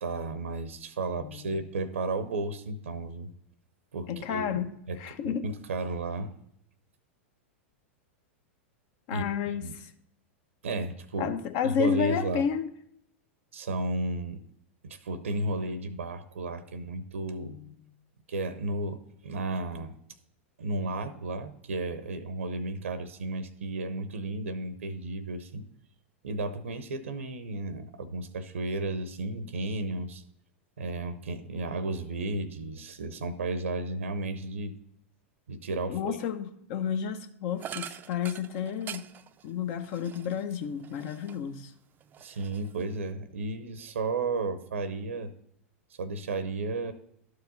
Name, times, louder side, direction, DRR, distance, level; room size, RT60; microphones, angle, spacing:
voice 1, 0.0-3.3 3.9-5.0 5.4-6.3 9.1-9.2 9.6-9.7 10.6-11.4 11.6-12.4 13.5-14.4 14.8-17.6 18.3-19.9 20.6-25.7 26.2-30.2 30.8-34.8 35.5-36.2 42.2-45.3 46.0-46.9, right 2 dB, 90° right, 0.7 m, -33 dB
voice 2, 1.2-1.6 4.1-5.5 9.1-9.9 11.2-12.7 17.4-17.7 35.9-39.1 39.4-41.7, left 8 dB, 55° left, 0.9 m, -31 dB
sound 1, 37.6-41.6 42.0-43.1, right 9 dB, 25° right, 0.4 m, -44 dB
12.0 x 4.8 x 4.0 m
hypercardioid pair, 110°, 7 cm